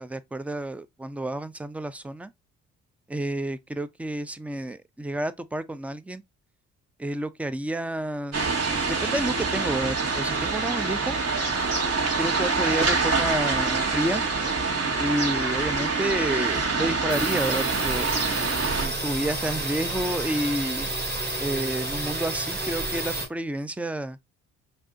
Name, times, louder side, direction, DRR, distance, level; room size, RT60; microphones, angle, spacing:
voice 1, 0.0-2.3 3.1-6.2 7.0-8.4 8.9-11.2 12.2-14.2 15.0-18.2 18.7-20.9 21.4-24.2, right 1 dB, 5° right, 0.4 m, -30 dB
sound 1, 8.3-18.9, right 4 dB, 60° right, 2.0 m, -26 dB
sound 2, 17.1-23.3, right 2 dB, 35° right, 2.1 m, -30 dB
5.3 x 2.7 x 2.6 m
cardioid pair, 90°, 30 cm